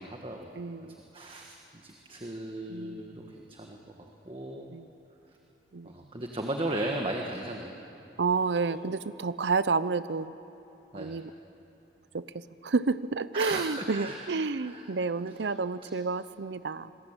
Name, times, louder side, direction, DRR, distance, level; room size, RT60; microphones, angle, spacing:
voice 1, 0.0-0.5 0.8-3.8 4.2-4.7 5.8-7.7 10.9-11.2 13.3-14.3 14.6-14.8 15.8-15.9, right 1 dB, 30° right, 1 dB, 1.5 m, -36 dB
voice 2, 0.6-1.0 2.7-3.3 4.7-4.9 5.7-5.9 8.2-10.3 10.9-11.3 12.1-16.9, right 4 dB, 80° right, 15 dB, 0.6 m, -30 dB
27.0 x 21.0 x 9.0 m, 2.8 s
head